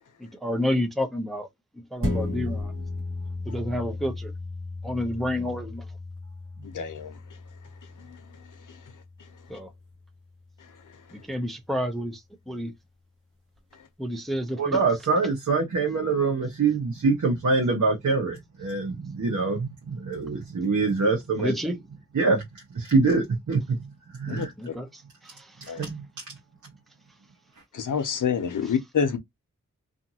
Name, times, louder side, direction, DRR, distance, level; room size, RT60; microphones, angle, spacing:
voice 1, 0.2-1.5 1.9-2.7 3.4-4.3 4.8-5.8 9.5-9.7 11.1-12.7 14.0-14.8 21.4-21.8 24.2-25.8 28.6-28.7, left 1 dB, ahead, 0.6 m, -30 dB
sound 1, 2.0-10.8 11.3-11.4, left 2 dB, 45° right, 1.2 m, -35 dB
voice 2, 6.6-7.1 24.3-24.7 25.7-25.8 27.7-29.2, left 7 dB, 85° left, 0.7 m, -27 dB
voice 3, 14.6-21.5 22.1-22.4 22.7-24.5 25.6-26.1, right 4 dB, 70° right, 0.9 m, -25 dB
2.5 x 2.5 x 2.7 m
wide cardioid pair, 75°, 30 cm